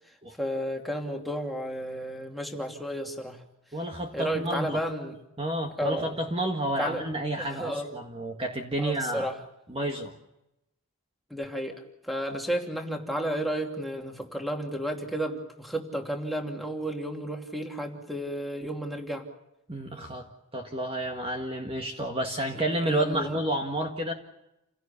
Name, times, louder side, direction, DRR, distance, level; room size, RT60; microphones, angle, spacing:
voice 1, 0.4-3.4 4.1-5.1 5.8-6.1 6.8-7.0 7.4-7.9 8.8-9.4 11.3-19.3 22.9-23.4, equal, ahead, 1 dB, 2.8 m, -32 dB
voice 2, 3.7-4.8 5.4-9.3 9.7-10.2 19.7-24.1, right 1 dB, 25° right, 3 dB, 1.8 m, -30 dB
29.0 x 17.5 x 7.0 m, 0.90 s
head